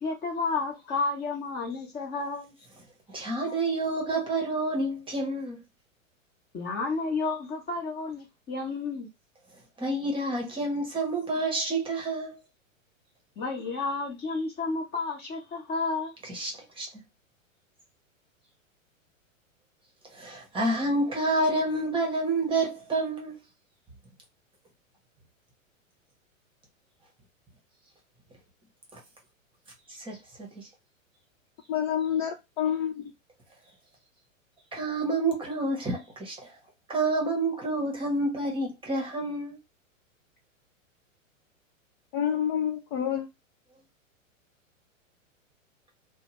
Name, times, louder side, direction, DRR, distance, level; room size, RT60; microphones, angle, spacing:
voice 1, 0.0-2.6 6.5-9.1 13.4-16.1, left 3 dB, 25° left, 0.9 m, -31 dB
voice 2, 3.1-5.6 9.8-12.4 16.3-16.9 20.1-23.3 30.1-30.2 30.6-30.7 34.7-36.3 36.9-39.6, right 2 dB, 15° right, 0.9 m, -28 dB
voice 3, 31.7-33.0 42.1-43.3, left 9 dB, 40° left, 0.4 m, -28 dB
2.7 x 2.2 x 3.0 m
hypercardioid pair, 115°, 40 cm